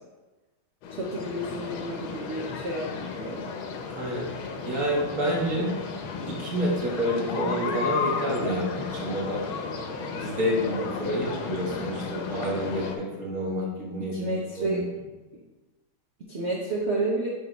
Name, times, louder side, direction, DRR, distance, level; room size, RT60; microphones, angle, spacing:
sound 1, 0.8-13.0, left 5 dB, 85° left, 1.5 m, -34 dB
voice 1, 0.9-3.5 14.1-14.8 16.3-17.3, right 2 dB, 85° right, -3 dB, 0.6 m, -30 dB
voice 2, 3.9-5.8 6.3-9.4 10.0-14.8, equal, 45° right, -4 dB, 1.7 m, -29 dB
8.3 x 3.7 x 3.0 m, 1.2 s
omnidirectional pair, 2.2 m